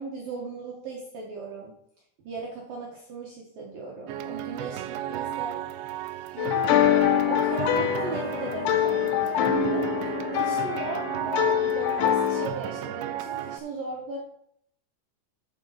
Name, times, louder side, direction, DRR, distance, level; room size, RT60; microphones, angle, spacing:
voice 1, 0.0-1.8 2.2-5.6 6.3-9.8 10.3-14.2, right 3 dB, 75° right, -2 dB, 2.0 m, -37 dB
sound 1, 4.1-13.6, right 12 dB, 90° right, 2.6 m, -34 dB
sound 2, 6.4-12.5, left 11 dB, 90° left, 2.4 m, -24 dB
10.5 x 4.4 x 5.6 m, 0.71 s
omnidirectional pair, 5.7 m